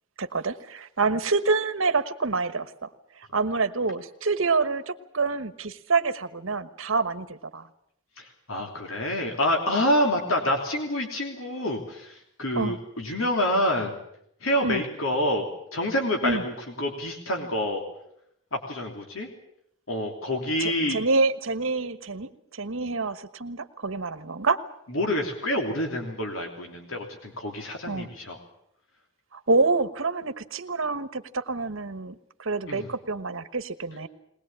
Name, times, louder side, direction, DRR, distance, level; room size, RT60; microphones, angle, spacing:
voice 1, 0.2-2.9 3.2-7.6 12.6-12.8 14.6-14.8 16.2-16.4 20.6-24.6 27.9-28.1 29.3-34.1, right 3 dB, 75° right, 11 dB, 1.3 m, -27 dB
voice 2, 8.2-14.0 14.4-15.5 15.7-17.8 18.5-19.3 19.9-21.0 24.9-28.4 32.7-32.9, left 1 dB, 85° left, 3 dB, 3.1 m, -27 dB
21.0 x 20.0 x 8.7 m, 0.75 s
head